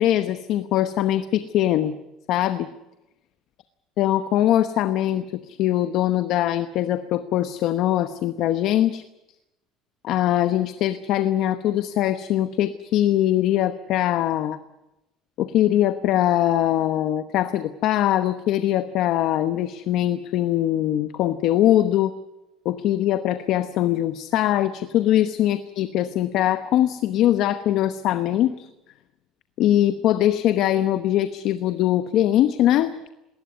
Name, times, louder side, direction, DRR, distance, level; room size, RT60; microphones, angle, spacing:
voice 1, 0.0-2.0 2.3-2.7 4.0-9.0 10.0-14.6 15.4-22.1 22.6-28.7 29.6-32.9, left 12 dB, 50° left, 11 dB, 1.0 m, -22 dB
20.5 x 19.0 x 9.5 m, 0.93 s
cardioid pair, 175°, 0 cm